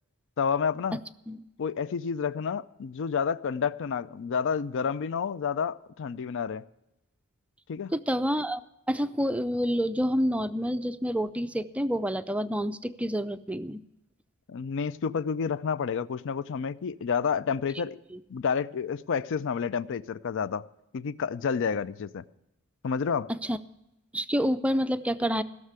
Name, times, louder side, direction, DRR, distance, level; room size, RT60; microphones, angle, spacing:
voice 1, 0.4-1.0 1.6-6.7 7.7-7.9 14.5-18.0 18.3-20.6 20.9-22.2 22.8-23.3, left 6 dB, 55° left, 0.4 m, -29 dB
voice 2, 7.9-8.6 8.9-13.8 18.1-18.2 23.3-23.6 24.1-25.4, equal, 5° right, 0.4 m, -28 dB
16.5 x 6.6 x 8.1 m
head